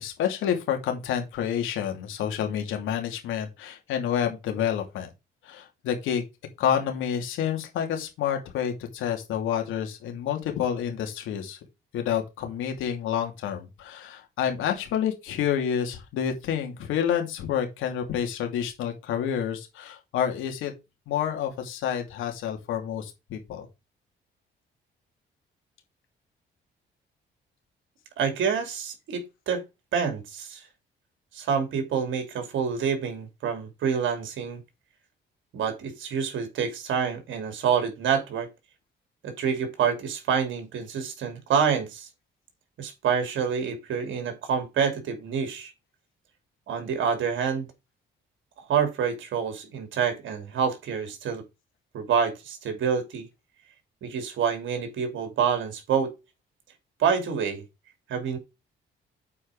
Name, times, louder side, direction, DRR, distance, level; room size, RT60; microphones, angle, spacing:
voice 1, 0.0-5.1 5.4-6.3 6.6-11.6 11.9-20.7 21.1-23.7, left 9 dB, 90° left, 2.7 m, -29 dB
voice 2, 28.2-29.6 29.9-30.7 31.3-34.6 35.5-38.5 39.2-42.1 42.8-45.7 46.7-47.7 48.6-51.5 51.9-53.3 54.0-56.1 57.0-57.6 58.1-58.4, right 7 dB, 75° right, 2.9 m, -27 dB
8.4 x 4.8 x 4.9 m
cardioid pair, 90°, 20 cm